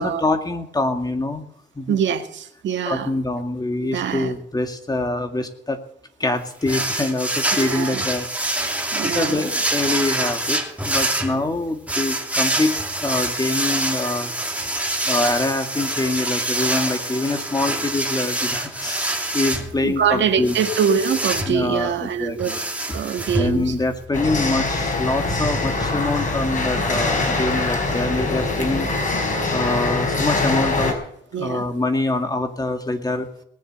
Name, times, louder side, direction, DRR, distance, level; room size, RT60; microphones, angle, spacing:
voice 1, 0.0-1.5 1.8-2.0 2.8-5.8 6.2-8.8 9.1-20.5 21.5-22.6 23.4-31.0 31.3-33.3, left 2 dB, 20° left, 6 dB, 2.1 m, -25 dB
voice 2, 1.9-3.1 3.8-4.3 7.6-8.0 8.9-9.5 19.8-22.6 22.9-23.8 31.3-31.6, right 7 dB, 70° right, 6 dB, 1.8 m, -24 dB
sound 1, 6.7-24.0, right 1 dB, 5° right, 2.6 m, -26 dB
sound 2, 24.1-30.9, left 3 dB, 40° left, 5.2 m, -23 dB
19.5 x 7.3 x 7.7 m, 0.70 s
cardioid pair, 90°, 20 cm